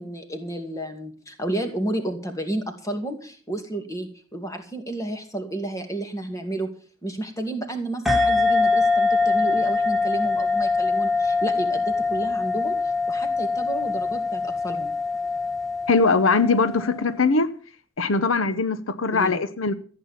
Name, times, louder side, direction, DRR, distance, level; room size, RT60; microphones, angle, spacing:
voice 1, 0.0-6.7 7.0-12.7 13.1-14.9 19.1-19.4, right 1 dB, 15° left, 2.4 m, -31 dB
sound 1, 8.1-17.1, left 3 dB, ahead, 1.5 m, -23 dB
voice 2, 15.9-17.5 18.0-19.7, left 4 dB, 75° left, 0.9 m, -21 dB
15.0 x 8.9 x 7.3 m
head